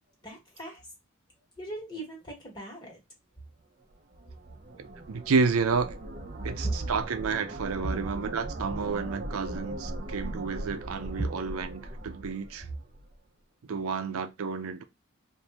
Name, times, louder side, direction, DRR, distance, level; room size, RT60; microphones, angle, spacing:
voice 1, 0.2-0.8 1.6-3.0 6.6-6.7 11.2-11.3, right 2 dB, 20° left, 1.4 m, -36 dB
sound 1, 3.9-13.1, right 1 dB, 35° right, 0.5 m, -40 dB
voice 2, 4.8-5.9 6.4-12.6 13.7-14.8, right 5 dB, 85° right, 0.5 m, -30 dB
3.4 x 2.6 x 2.9 m
head